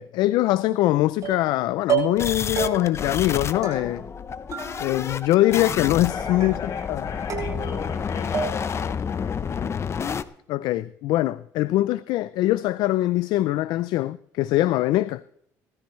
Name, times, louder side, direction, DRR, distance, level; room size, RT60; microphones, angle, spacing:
voice 1, 0.0-4.0 4.8-7.0 10.5-15.2, left 16 dB, 80° left, 0.4 m, -23 dB
sound 1, 1.2-1.5 1.9-2.3 2.6-3.1 3.6-4.2 4.5-5.2 5.5-6.0 6.4-6.9 7.3-8.0 8.3-8.9, right 8 dB, 50° right, 6.7 m, -31 dB
sound 2, 2.2-10.2, left 6 dB, 40° left, 0.8 m, -30 dB
voice 2, 6.1-9.7, left 6 dB, 60° left, 6.8 m, -40 dB
20.0 x 13.5 x 3.2 m
cardioid pair, 95°, 7 cm